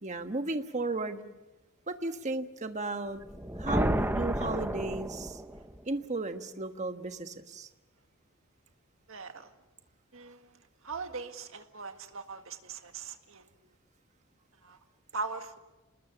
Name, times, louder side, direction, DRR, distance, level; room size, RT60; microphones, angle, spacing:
voice 1, 0.0-1.2 1.9-3.2 3.6-5.4 5.9-7.7, right 2 dB, 35° right, 7 dB, 1.3 m, -34 dB
sound 1, 3.2-5.8, right 1 dB, 10° right, 0.9 m, -31 dB
voice 2, 9.1-9.5 10.1-13.5 14.6-14.8 15.1-15.6, right 4 dB, 70° right, 6 dB, 1.8 m, -40 dB
29.5 x 20.0 x 7.0 m, 1.1 s
head